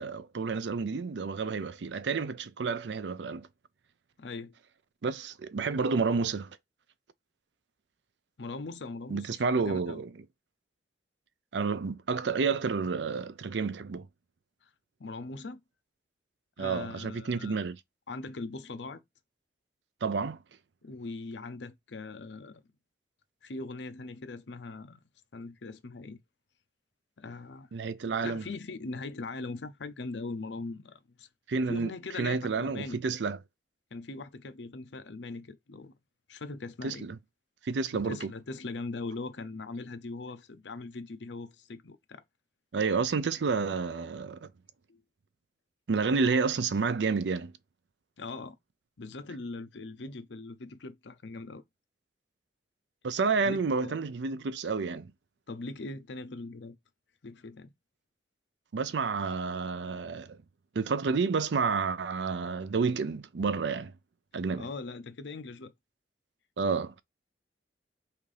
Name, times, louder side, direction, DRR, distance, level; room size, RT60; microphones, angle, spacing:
voice 1, 0.0-3.5 5.0-6.5 9.1-10.1 11.5-14.1 16.6-17.8 20.0-20.4 27.7-28.4 31.5-31.9 32.2-33.4 36.8-37.2 37.6-38.3 42.7-44.5 45.9-47.5 53.0-55.1 58.7-60.4 60.7-63.9 64.3-64.7 66.6-67.0, right 4 dB, 80° right, 0.5 m, -30 dB
voice 2, 4.2-4.5 8.4-10.0 15.0-15.6 16.6-17.6 18.1-19.0 20.8-22.6 23.4-25.0 25.3-26.2 27.2-27.7 28.2-31.3 31.7-33.0 33.9-35.9 36.3-37.1 37.9-42.2 44.9-45.0 48.2-48.6 49.0-51.6 53.4-54.0 55.5-56.8 57.2-57.7 64.6-65.7, left 3 dB, 85° left, 0.7 m, -40 dB
5.6 x 2.6 x 3.3 m
head